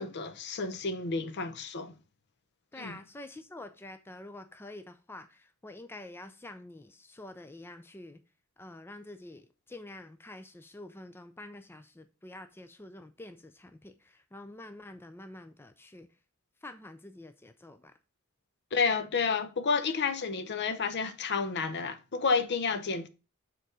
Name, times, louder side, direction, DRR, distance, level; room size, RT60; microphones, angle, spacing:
voice 1, 0.0-1.9 2.8-3.0 18.7-23.1, left 5 dB, 55° left, 0.6 m, -30 dB
voice 2, 2.7-8.2 8.6-16.1 16.6-17.9, left 2 dB, 10° left, 0.4 m, -47 dB
6.8 x 4.0 x 4.7 m
head